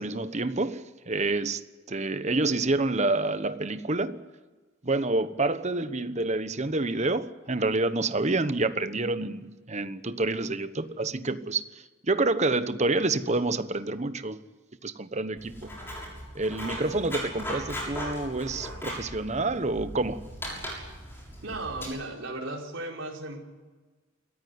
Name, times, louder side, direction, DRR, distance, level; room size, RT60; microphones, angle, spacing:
voice 1, 0.0-1.6 1.9-4.2 4.8-11.6 12.0-14.4 14.8-15.7 16.3-20.4, right 2 dB, 35° right, 1.1 m, -28 dB
Writing, 15.4-21.9, equal, 10° left, 6.8 m, -38 dB
voice 2, 21.4-23.4, right 2 dB, 65° right, 4.7 m, -35 dB
26.5 x 14.5 x 9.7 m
head